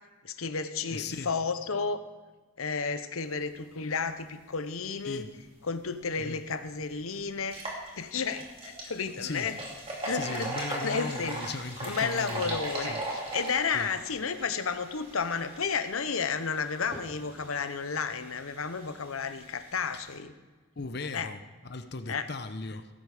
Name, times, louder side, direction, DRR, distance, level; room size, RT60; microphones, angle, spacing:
voice 1, 0.2-2.0 2.6-5.3 5.6-7.6 8.0-9.6 10.0-10.5 10.8-11.4 11.8-20.3 21.1-21.3 22.1-22.3, left 5 dB, 80° left, 10 dB, 0.8 m, -32 dB
voice 2, 0.9-1.3 5.1-5.3 6.2-6.4 9.1-9.5 10.1-12.6 12.9-13.0 13.7-13.9 20.8-22.9, left 3 dB, 50° left, 10 dB, 0.8 m, -37 dB
sound 1, 6.1-6.2 6.7-6.8 7.4-20.1, right 1 dB, 25° right, 2.7 m, -39 dB
17.5 x 8.4 x 5.0 m, 1.3 s
head